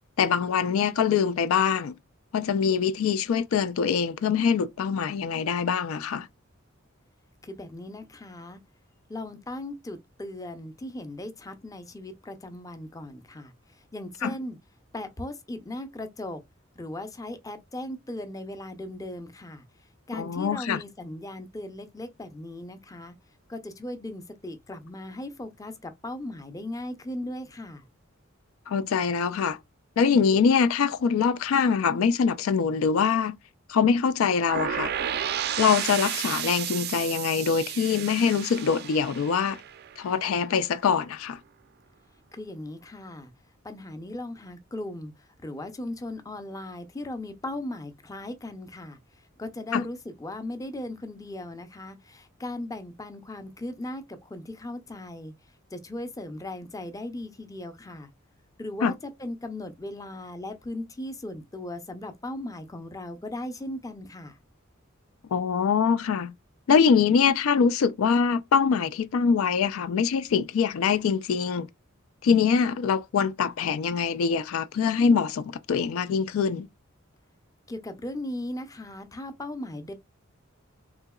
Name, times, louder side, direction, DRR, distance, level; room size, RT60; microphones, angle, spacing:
voice 1, 0.2-2.0 2.3-6.3 14.2-14.3 20.1-20.8 28.7-29.6 30.0-33.4 33.7-34.9 35.6-39.6 40.0-41.4 49.7-49.8 58.8-58.9 65.3-66.3 66.7-71.7 72.2-76.7, left 6 dB, 85° left, 0.3 m, -24 dB
voice 2, 7.4-8.6 9.1-13.5 13.9-14.6 14.9-16.4 16.8-19.6 20.1-23.1 23.5-27.9 42.3-43.3 43.6-45.1 45.4-49.0 49.4-55.3 55.7-58.1 58.6-64.4 77.7-79.9, left 1 dB, 15° left, 0.5 m, -37 dB
sound 1, 34.5-40.4, right 10 dB, 50° right, 0.4 m, -32 dB
3.8 x 2.8 x 2.3 m
head